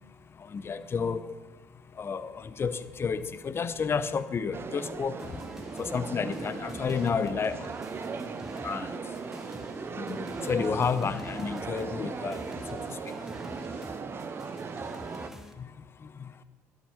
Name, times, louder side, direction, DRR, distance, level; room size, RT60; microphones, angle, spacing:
voice 1, 0.5-1.3 2.0-2.3 2.6-5.2 5.8-7.7 8.6-8.9 10.0-12.4 12.7-12.8, left 5 dB, 35° left, 13 dB, 0.7 m, -30 dB
sound 1, 4.5-15.3, right 5 dB, 30° right, 0.7 m, -38 dB
sound 2, 5.2-15.5, equal, 5° right, 1.0 m, -46 dB
11.5 x 8.9 x 5.6 m, 1.3 s
hypercardioid pair, 60°, 7 cm